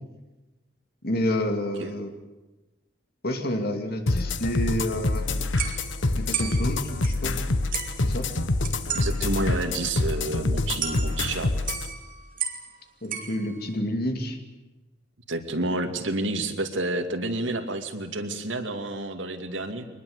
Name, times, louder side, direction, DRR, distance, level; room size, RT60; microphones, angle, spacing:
voice 1, 1.0-2.1 3.2-5.3 6.2-7.4 8.0-8.3 13.0-14.4, left 1 dB, 55° left, 6 dB, 2.8 m, -29 dB
sound 1, 4.1-11.9, left 2 dB, 80° left, 1.3 m, -26 dB
sound 2, 4.9-5.1 5.6-7.5 7.7-8.1 8.6-9.1 9.4-9.5 9.8-9.9 10.1-10.2 10.8-11.4 11.7-12.8 13.0-13.8, right 8 dB, 45° right, 3.0 m, -34 dB
voice 2, 8.9-11.5 15.3-19.8, right 2 dB, 80° right, 7 dB, 2.4 m, -29 dB
23.5 x 20.0 x 8.1 m, 1.1 s
head